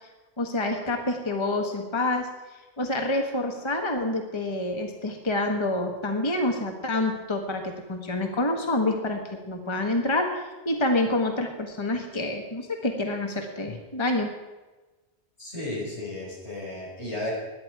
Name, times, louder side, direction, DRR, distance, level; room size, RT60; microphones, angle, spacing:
voice 1, 0.4-2.3 2.8-14.3, left 2 dB, 25° left, 3 dB, 1.4 m, -27 dB
voice 2, 15.4-17.3, left 1 dB, 85° left, -4 dB, 5.9 m, -34 dB
17.0 x 11.0 x 4.7 m, 1.2 s
omnidirectional pair, 1.1 m